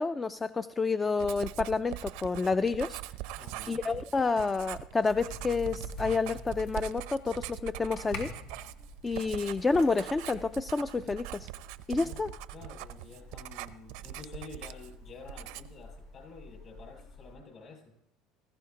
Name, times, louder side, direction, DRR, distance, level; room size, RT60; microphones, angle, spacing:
voice 1, 0.0-3.0 3.7-8.3 9.0-11.5 11.9-12.3, left 4 dB, 20° left, 13 dB, 0.4 m, -29 dB
Writing, 1.2-15.0 15.3-15.8, right 14 dB, 75° right, 0.6 m, -42 dB
voice 2, 3.4-3.8 12.0-12.2 12.5-17.9, left 4 dB, 40° left, 0 dB, 6.9 m, -49 dB
sound 1, 5.1-17.3, left 2 dB, 80° left, 4.1 m, -48 dB
19.5 x 15.0 x 2.9 m, 0.78 s
supercardioid pair, 110°, 0 cm